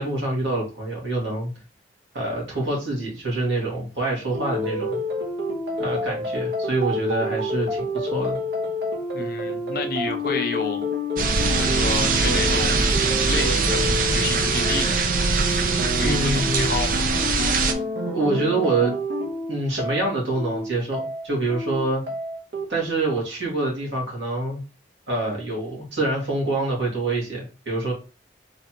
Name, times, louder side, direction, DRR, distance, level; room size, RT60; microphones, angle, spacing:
voice 1, 0.0-1.5 2.1-5.0 5.8-8.4 16.0-16.7 18.1-18.9 19.5-22.0 22.7-24.6 25.1-27.9, right 2 dB, 90° right, -2 dB, 2.2 m, -26 dB
sound 1, 4.3-22.6, left 1 dB, 70° right, 0.9 m, -28 dB
voice 2, 9.1-10.9 11.5-12.8 13.3-15.0 16.0-17.0, left 3 dB, 55° left, 5 dB, 0.7 m, -29 dB
sound 2, 11.2-17.7, right 4 dB, 50° right, 0.5 m, -22 dB
4.0 x 3.3 x 2.9 m, 0.32 s
head